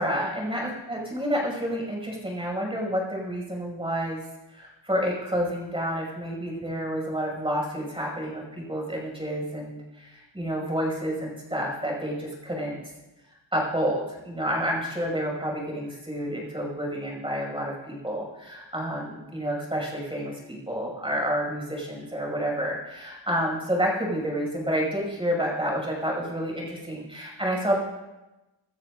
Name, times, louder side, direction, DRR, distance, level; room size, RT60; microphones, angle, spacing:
voice 1, 0.0-4.2 4.5-12.8 13.5-27.8, equal, 10° right, -2 dB, 6.3 m, -29 dB
26.0 x 13.5 x 2.6 m, 1.1 s
wide cardioid pair, 130°, 46 cm